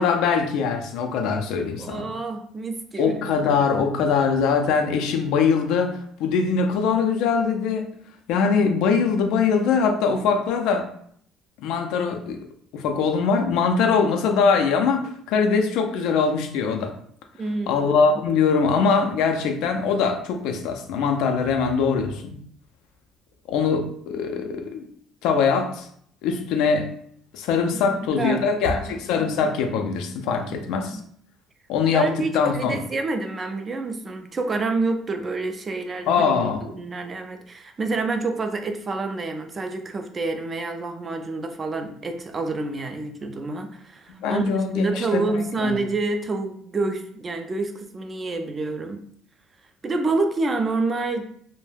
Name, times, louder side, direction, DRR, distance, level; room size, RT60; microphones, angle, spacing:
voice 1, 0.0-2.1 3.0-7.9 8.3-10.9 11.6-12.4 12.7-16.9 17.7-22.3 23.5-24.9 25.2-25.9 26.2-26.9 27.3-31.0 31.7-32.8 36.1-36.6 44.2-45.7, left 5 dB, 75° left, 5 dB, 0.4 m, -22 dB
voice 2, 1.8-3.1 17.4-18.2 28.2-29.0 30.5-30.6 30.9-31.1 31.9-36.2 36.6-49.0 49.8-51.2, right 3 dB, 30° right, 6 dB, 0.3 m, -28 dB
2.2 x 2.0 x 3.2 m, 0.64 s
cardioid pair, 100°, 0 cm